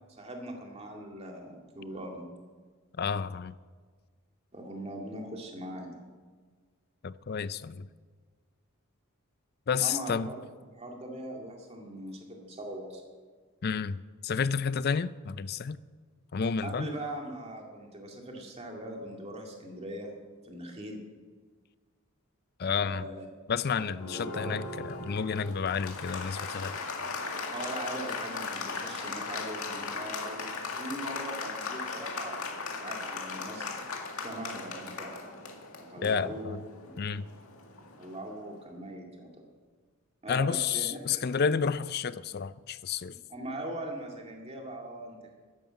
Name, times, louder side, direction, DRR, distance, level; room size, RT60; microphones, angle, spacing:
voice 1, 0.1-2.3 4.5-6.1 9.8-10.4 10.7-13.0 16.6-20.1 20.4-21.0 22.8-23.3 23.7-24.6 27.5-33.8 34.2-35.1 35.9-36.6 36.8-37.0 38.0-39.5 40.2-41.2 43.3-45.3, right 1 dB, 30° right, 2.3 m, -41 dB
voice 2, 3.0-3.5 7.0-7.9 9.7-10.3 13.6-15.8 16.3-16.9 22.6-23.1 23.5-26.8 36.0-36.6 37.0-37.3 40.3-43.1, left 6 dB, 45° left, 0.4 m, -30 dB
Applause, 24.0-38.3, left 4 dB, 80° left, 2.0 m, -38 dB
13.0 x 10.5 x 7.5 m
head